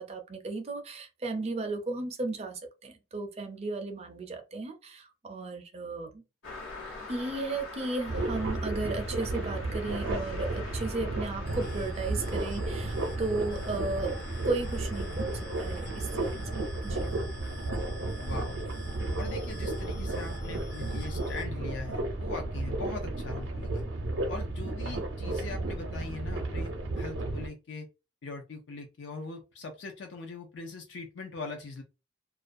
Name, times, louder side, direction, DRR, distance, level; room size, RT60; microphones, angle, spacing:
voice 1, 0.0-6.2 7.1-14.2 14.4-17.1, right 3 dB, 30° right, 0.4 m, -35 dB
Car passing by, 6.4-17.9, left 3 dB, 90° left, 1.1 m, -46 dB
sound 1, 8.1-27.5, right 2 dB, 90° right, 0.6 m, -33 dB
sound 2, 11.4-21.4, equal, 55° left, 1.2 m, -45 dB
voice 2, 18.2-18.6 19.2-23.9 24.3-27.9 28.2-31.8, left 3 dB, 70° left, 0.4 m, -41 dB
2.4 x 2.1 x 2.5 m
head